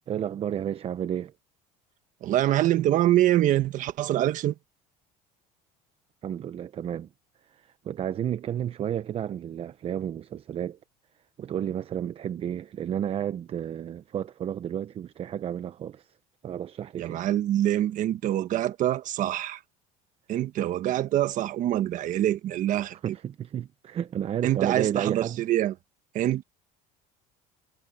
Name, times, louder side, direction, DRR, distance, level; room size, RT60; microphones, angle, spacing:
voice 1, 0.1-1.3 6.2-7.1 7.5-10.8 11.4-16.1 16.4-17.2 23.0-25.4, right 10 dB, 35° right, 0.8 m, -32 dB
voice 2, 2.2-4.5 17.0-19.6 20.3-23.0 24.4-25.7 26.1-26.4, right 13 dB, 50° right, 1.5 m, -25 dB
cardioid pair, 130°, 16 cm